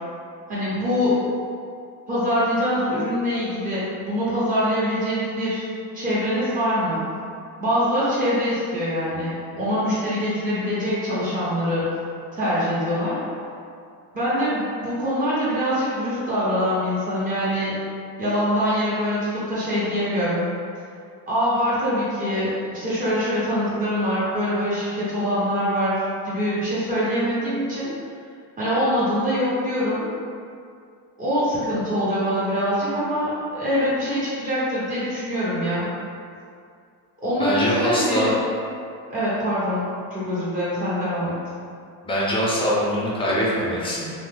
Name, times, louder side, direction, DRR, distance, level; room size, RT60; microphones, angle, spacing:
voice 1, 0.5-1.2 2.1-5.7 5.9-7.0 7.6-11.8 12.3-13.2 14.1-17.8 18.2-20.5 21.3-27.9 28.6-30.0 31.2-35.9 37.2-38.3 39.1-41.4, equal, 20° right, -11 dB, 1.2 m, -24 dB
voice 2, 37.4-38.3 42.0-44.1, equal, 15° left, -6 dB, 0.4 m, -23 dB
2.9 x 2.0 x 3.7 m, 2.4 s
cardioid pair, 135°, 44 cm